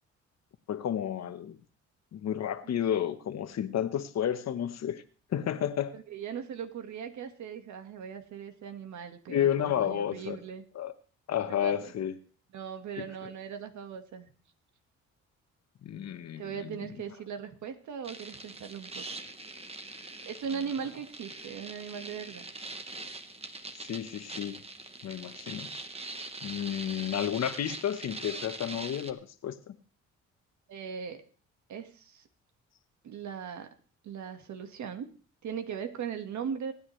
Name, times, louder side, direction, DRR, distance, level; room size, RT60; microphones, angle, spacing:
voice 1, 0.7-1.6 2.1-5.0 5.3-5.9 9.3-10.4 10.7-10.9 11.3-12.1 13.0-13.1 15.8-16.8 23.8-24.6 25.0-25.7 26.4-29.7, left 10 dB, 60° left, 10 dB, 1.2 m, -31 dB
voice 2, 5.9-10.6 11.5-11.8 12.5-14.3 16.4-19.2 20.2-22.5 30.7-31.2 31.7-32.3 33.0-33.8 34.0-35.1 35.4-36.7, right 7 dB, 70° right, 7 dB, 1.8 m, -39 dB
sound 1, 18.0-29.1, right 2 dB, 20° right, 1.3 m, -43 dB
25.0 x 9.8 x 3.3 m, 0.40 s
cardioid pair, 90°, 30 cm